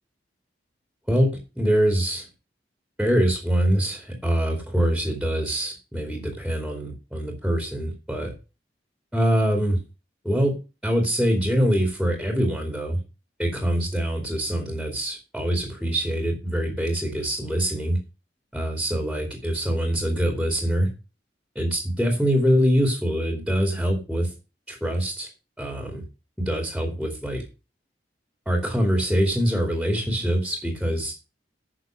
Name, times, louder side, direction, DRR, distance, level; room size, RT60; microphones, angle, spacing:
voice 1, 1.1-2.3 3.0-8.3 9.1-9.8 10.2-10.6 10.8-13.0 13.4-18.0 18.5-20.9 21.5-24.3 24.7-25.3 25.6-26.0 26.4-27.4 28.5-31.1, equal, ahead, 2 dB, 2.7 m, -24 dB
10.0 x 6.7 x 6.4 m, 0.30 s
head